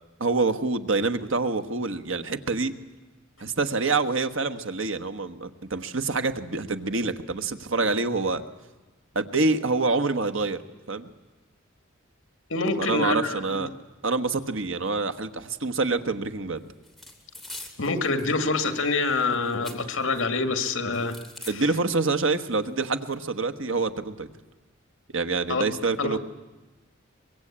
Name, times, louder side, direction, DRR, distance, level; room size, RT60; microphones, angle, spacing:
voice 1, 0.2-2.7 3.4-8.4 9.1-10.6 10.9-11.1 12.8-13.7 14.0-16.7 21.5-24.3 25.1-26.2, right 3 dB, 70° right, 9 dB, 1.3 m, -26 dB
voice 2, 12.5-13.6 17.8-21.2 25.5-25.6 26.0-26.2, left 3 dB, 75° left, 9 dB, 2.2 m, -26 dB
sound 1, 16.8-18.3 18.6-20.2 20.6-21.5 22.2-22.3 22.5-23.1, left 2 dB, ahead, 2.9 m, -44 dB
24.0 x 22.5 x 8.8 m, 1.2 s
head